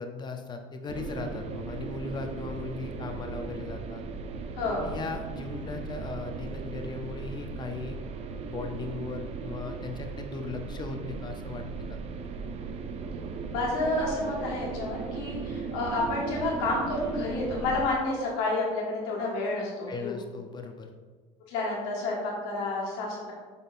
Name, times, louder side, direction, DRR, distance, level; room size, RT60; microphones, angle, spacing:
voice 1, 0.0-4.0 4.8-8.0 8.5-12.3 19.9-20.9, left 4 dB, 30° left, 5 dB, 0.6 m, -38 dB
sound 1, 0.9-17.9, right 5 dB, 45° right, 0.4 m, -37 dB
voice 2, 4.6-4.9 13.5-20.2 21.5-23.3, left 2 dB, 80° left, -3 dB, 1.5 m, -30 dB
5.3 x 4.0 x 2.5 m, 1.4 s
supercardioid pair, 95°, 16 cm